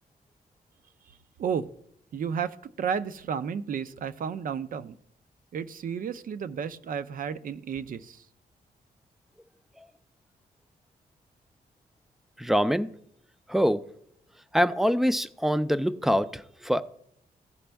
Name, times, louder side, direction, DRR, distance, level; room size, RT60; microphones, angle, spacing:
voice 1, 2.1-4.9 5.5-8.2, right 7 dB, 60° right, 0.5 m, -32 dB
voice 2, 12.4-12.9 13.5-13.8 14.5-16.8, equal, ahead, 0.3 m, -24 dB
15.0 x 5.1 x 3.4 m
wide cardioid pair, 120°, 16 cm